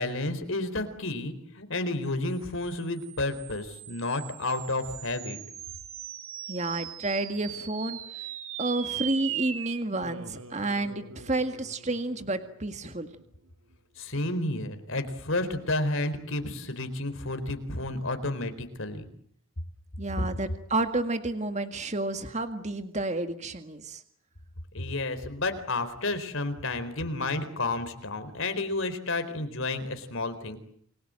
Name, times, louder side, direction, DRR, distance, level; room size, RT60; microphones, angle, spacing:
voice 1, 0.0-5.4 14.0-19.1 20.2-20.3 24.7-30.6, left 2 dB, 70° left, 10 dB, 4.2 m, -31 dB
sound 1, 2.6-13.2, right 10 dB, 75° right, 2.6 m, -40 dB
voice 2, 6.5-8.0 8.6-13.1 20.0-24.0, right 2 dB, 35° right, 8 dB, 1.9 m, -30 dB
29.5 x 22.0 x 7.7 m, 0.67 s
head